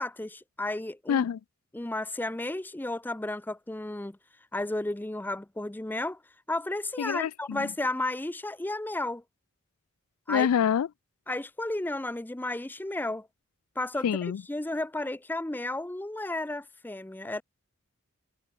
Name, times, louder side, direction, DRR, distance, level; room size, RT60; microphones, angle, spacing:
voice 1, 0.0-1.2 1.7-4.2 4.5-6.2 6.5-9.2 10.3-10.5 11.3-13.3 13.8-14.0 14.5-17.4, left 2 dB, 10° left, 0.5 m, -33 dB
voice 2, 1.1-1.4 7.0-7.7 10.3-10.9 14.0-14.4, left 8 dB, 90° left, 0.4 m, -26 dB
head